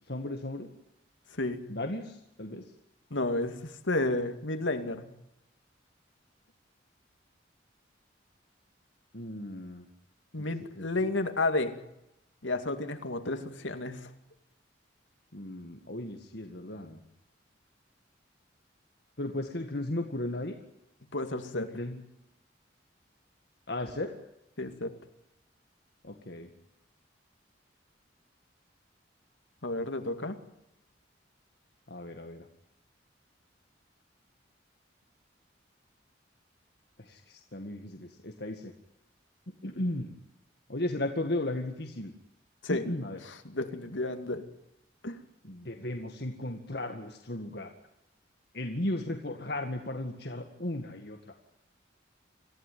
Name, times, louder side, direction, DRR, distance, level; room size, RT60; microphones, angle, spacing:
voice 1, 0.1-0.7 1.7-2.6 9.1-9.9 10.8-10.9 15.3-17.0 19.2-20.6 21.5-22.0 23.7-24.1 26.0-26.5 31.9-32.5 37.0-38.7 39.6-40.1 40.7-42.1 42.7-43.2 45.4-47.7 48.5-51.3, left 1 dB, 60° left, 4 dB, 2.0 m, -35 dB
voice 2, 3.1-3.6 3.8-5.1 10.3-11.7 12.4-14.1 21.1-21.7 24.6-24.9 29.6-30.4 42.6-42.8 43.4-44.4 45.0-45.2, left 2 dB, 80° left, 7 dB, 2.4 m, -31 dB
27.0 x 15.0 x 9.4 m, 0.85 s
head